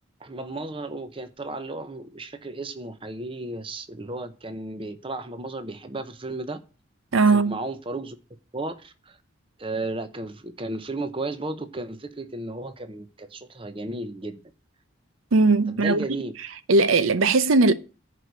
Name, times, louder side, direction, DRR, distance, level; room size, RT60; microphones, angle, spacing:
voice 1, 0.2-6.6 7.2-8.2 8.5-9.2 9.6-14.4 15.7-16.4, right 2 dB, 25° right, 0.8 m, -34 dB
voice 2, 7.1-7.6 15.3-16.0 16.7-17.7, right 3 dB, 85° right, 0.7 m, -18 dB
10.5 x 4.8 x 8.1 m
head